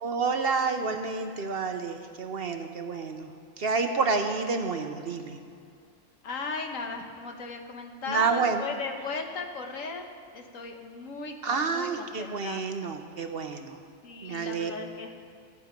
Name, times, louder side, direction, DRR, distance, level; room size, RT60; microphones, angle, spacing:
voice 1, 0.0-3.3 3.6-5.4 8.1-8.6 11.4-13.8 14.2-14.7, right 4 dB, 50° right, 6 dB, 0.9 m, -29 dB
voice 2, 6.2-12.6 14.0-15.3, left 4 dB, 70° left, 4 dB, 1.5 m, -37 dB
15.5 x 9.5 x 5.2 m, 2.4 s
omnidirectional pair, 1.4 m